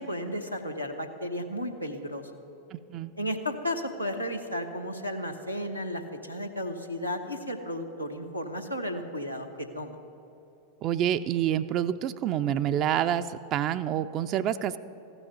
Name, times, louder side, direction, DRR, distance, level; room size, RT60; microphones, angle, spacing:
voice 1, 0.0-2.2 3.2-9.5 9.7-10.0, left 1 dB, 90° left, 2 dB, 1.0 m, -33 dB
voice 2, 2.7-3.1 10.8-14.8, right 10 dB, 35° right, 11 dB, 0.4 m, -27 dB
14.5 x 6.1 x 9.2 m, 2.9 s
figure-of-eight pair, 90°, 0 cm